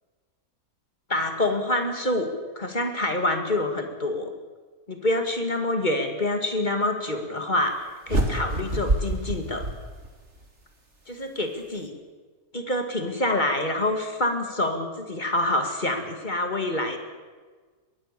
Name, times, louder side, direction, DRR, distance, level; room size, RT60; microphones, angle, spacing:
voice 1, 1.1-4.3 4.9-9.7 11.1-11.9 12.5-17.0, left 1 dB, 30° left, 5 dB, 2.4 m, -26 dB
sound 1, 8.1-10.5, right 1 dB, 45° right, 3.2 m, -27 dB
22.5 x 19.5 x 7.0 m, 1.4 s
omnidirectional pair, 1.6 m